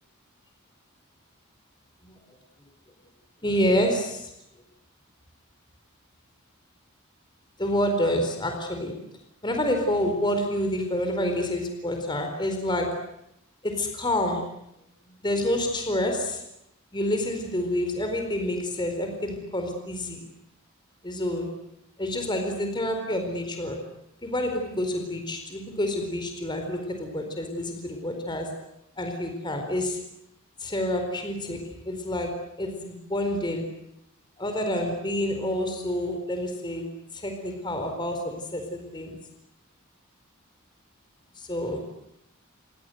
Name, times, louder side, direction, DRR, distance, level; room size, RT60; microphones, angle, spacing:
voice 1, 3.4-4.3 7.6-9.0 9.4-12.9 13.6-14.4 15.1-16.4 16.9-20.2 21.0-21.5 22.0-23.8 24.2-28.5 29.0-30.0 30.6-33.6 34.4-36.8 37.1-39.2 41.5-41.8, left 1 dB, 20° left, 4 dB, 4.4 m, -28 dB
29.5 x 24.0 x 8.0 m, 0.82 s
head